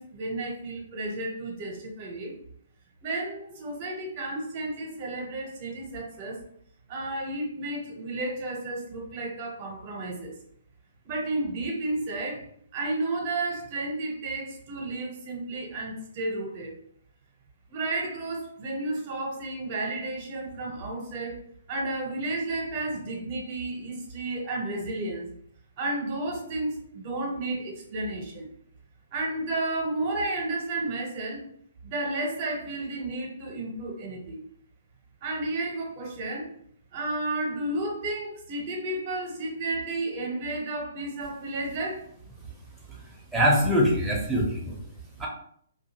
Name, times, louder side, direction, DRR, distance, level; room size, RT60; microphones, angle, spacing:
voice 1, 0.0-2.3 3.0-6.4 6.9-10.3 11.0-12.4 12.7-16.7 17.7-21.4 21.7-25.3 25.8-28.5 29.1-31.4 31.8-34.4 35.2-36.5 36.9-42.0, right 2 dB, 35° right, 1 dB, 0.9 m, -32 dB
voice 2, 43.3-44.8 45.2-45.3, equal, 5° right, -4 dB, 0.8 m, -23 dB
2.6 x 2.4 x 2.9 m, 0.65 s
figure-of-eight pair, 125°, 0 cm